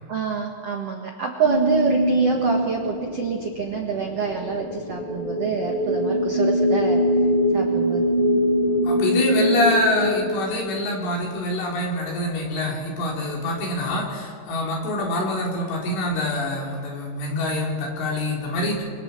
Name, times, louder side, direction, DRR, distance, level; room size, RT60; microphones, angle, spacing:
voice 1, 0.1-7.0 7.5-8.1, right 5 dB, 65° right, 1 dB, 1.5 m, -26 dB
sound 1, 1.4-11.2, equal, 20° left, 7.2 m, -23 dB
voice 2, 8.8-18.8, left 1 dB, 80° left, -2 dB, 6.4 m, -25 dB
29.0 x 25.5 x 4.6 m, 2.1 s
omnidirectional pair, 5.5 m